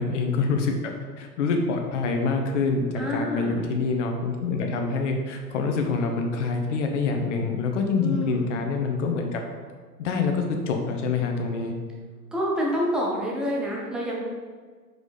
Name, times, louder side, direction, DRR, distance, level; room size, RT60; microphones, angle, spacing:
voice 1, 0.0-9.4 10.0-11.7, left 4 dB, 45° left, 3 dB, 1.1 m, -26 dB
voice 2, 3.0-3.6 8.0-8.5 12.3-14.2, equal, ahead, -4 dB, 0.5 m, -27 dB
5.0 x 4.8 x 4.2 m, 1.5 s
figure-of-eight pair, 110°, 49 cm